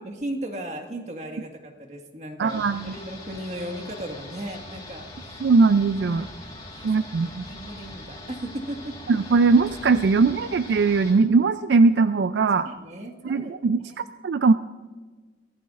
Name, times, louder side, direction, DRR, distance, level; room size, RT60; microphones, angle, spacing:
voice 1, 0.0-5.4 6.1-8.9 12.7-13.5 13.8-13.9, right 1 dB, 40° right, 3 dB, 1.7 m, -36 dB
voice 2, 2.4-2.9 5.4-6.3 6.8-7.5 9.1-12.7 13.2-14.5, right 4 dB, 75° right, 12 dB, 0.4 m, -20 dB
sound 1, 2.5-11.1, left 1 dB, 25° left, 3.5 m, -42 dB
23.0 x 15.5 x 2.5 m, 1.4 s
head